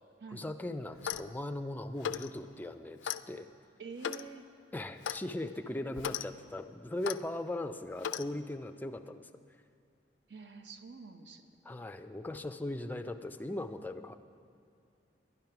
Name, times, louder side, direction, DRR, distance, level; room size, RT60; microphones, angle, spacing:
voice 1, 0.3-3.5 4.7-9.3 11.6-14.2, left 1 dB, 10° left, 7 dB, 0.4 m, -39 dB
Clock, 0.9-1.3 2.0-2.3 3.0-3.2 4.0-4.3 5.0-5.2 6.0-6.3 7.0-7.2 8.0-8.3, left 9 dB, 80° left, 0.3 m, -36 dB
voice 2, 3.8-4.4 10.3-11.5, right 4 dB, 65° right, 7 dB, 0.8 m, -47 dB
11.0 x 10.5 x 5.8 m, 2.5 s
head